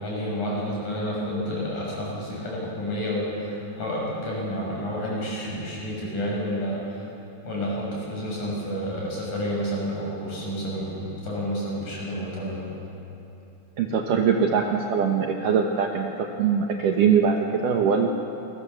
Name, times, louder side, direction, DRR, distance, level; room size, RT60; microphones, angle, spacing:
voice 1, 0.0-7.0 7.4-12.7, equal, 40° left, -4 dB, 8.3 m, -30 dB
voice 2, 13.8-18.1, right 6 dB, 90° right, 2 dB, 1.8 m, -22 dB
28.5 x 22.5 x 7.1 m, 2.9 s
omnidirectional pair, 5.7 m